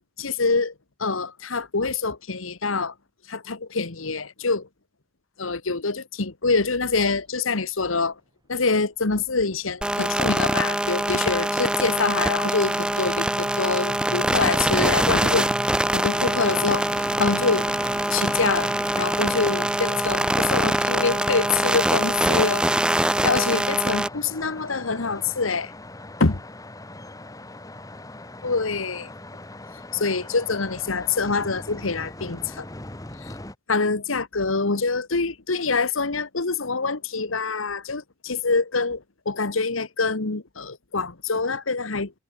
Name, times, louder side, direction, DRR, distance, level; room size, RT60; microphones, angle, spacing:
voice 1, 0.2-0.7 1.0-2.9 3.3-4.7 5.4-8.2 8.5-15.5 15.9-17.7 18.1-22.6 23.0-25.7 26.2-26.4 28.4-29.1 29.9-32.6 33.2-33.3 33.7-42.1, left 4 dB, 85° left, 1.5 m, -25 dB
sound 1, 6.8-7.1 7.9-8.1 8.4-8.6 8.8-9.2 9.5-25.9, equal, 20° right, 3.8 m, -45 dB
sound 2, 9.8-24.1, right 1 dB, 5° right, 0.7 m, -24 dB
sound 3, 16.1-33.5, left 2 dB, 15° left, 1.6 m, -40 dB
head